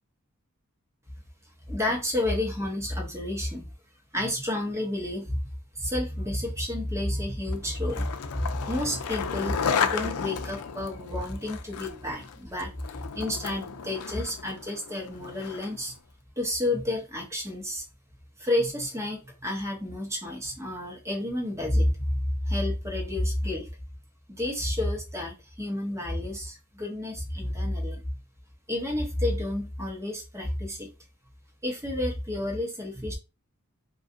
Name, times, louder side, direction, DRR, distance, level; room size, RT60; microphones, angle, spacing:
voice 1, 1.7-3.7 4.1-5.5 5.7-16.0 16.4-17.8 18.4-23.7 24.3-28.0 28.7-30.9 31.6-33.1, left 1 dB, 15° right, 0 dB, 0.9 m, -30 dB
Skateboard, 7.5-15.9, left 7 dB, 85° left, 0.5 m, -33 dB
2.6 x 2.4 x 3.7 m, 0.28 s
head